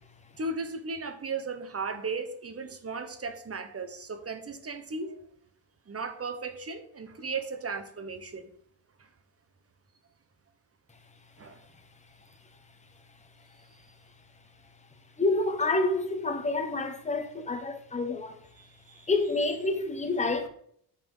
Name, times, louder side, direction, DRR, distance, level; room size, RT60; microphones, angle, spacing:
voice 1, 0.4-5.2 5.9-8.4 9.0-9.1 11.4-11.6 18.6-19.1 20.4-20.5, right 4 dB, 30° right, 1.0 m, -36 dB
voice 2, 15.2-18.4 19.1-20.5, left 2 dB, 15° left, 1.0 m, -28 dB
6.4 x 4.3 x 5.5 m
cardioid pair, 95°, 45 cm